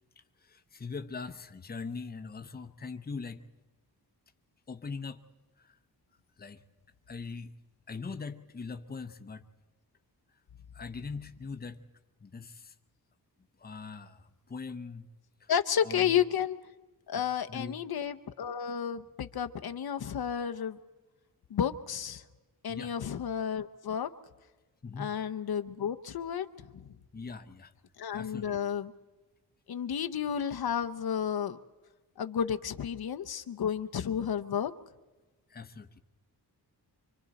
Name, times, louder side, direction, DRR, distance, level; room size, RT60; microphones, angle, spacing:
voice 1, 0.4-3.5 4.7-5.2 5.6-5.8 6.4-6.6 7.1-7.5 7.9-9.5 10.7-11.8 12.2-12.7 13.6-15.1 15.4-15.5 15.8-16.1 17.2-17.8 22.7-22.9 24.8-25.2 27.1-27.7 28.1-28.6 35.5-36.0, left 4 dB, 25° left, 8 dB, 0.8 m, -41 dB
voice 2, 15.5-16.6 17.1-20.8 21.5-22.2 22.6-24.1 25.0-26.5 28.0-28.9 29.7-31.6 32.2-34.7, left 8 dB, 65° left, 8 dB, 0.7 m, -31 dB
26.0 x 24.5 x 4.1 m, 1.2 s
wide cardioid pair, 155°, 41 cm